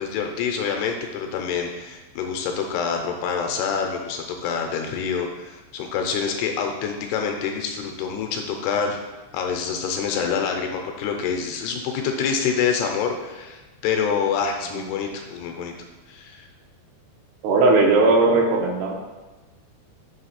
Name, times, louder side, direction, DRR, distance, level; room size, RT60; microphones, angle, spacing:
voice 1, 0.0-9.0 9.3-15.7 16.1-16.5, left 6 dB, 85° left, 3 dB, 2.4 m, -26 dB
voice 2, 17.4-18.9, right 2 dB, 75° right, 1 dB, 2.7 m, -18 dB
7.7 x 3.1 x 5.7 m, 1.2 s
omnidirectional pair, 5.1 m